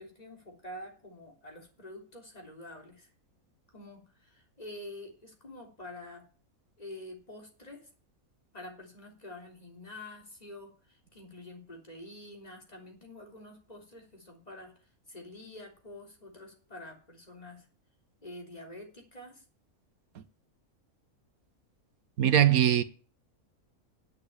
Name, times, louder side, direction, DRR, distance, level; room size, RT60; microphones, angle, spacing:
voice 1, 0.0-3.1 3.7-6.2 6.8-7.9 8.5-14.8 15.1-17.7 18.2-19.4, left 1 dB, 30° left, 3.5 m, -47 dB
voice 2, 22.2-22.8, right 10 dB, 85° right, 1.5 m, -21 dB
10.5 x 8.5 x 8.6 m
omnidirectional pair, 1.5 m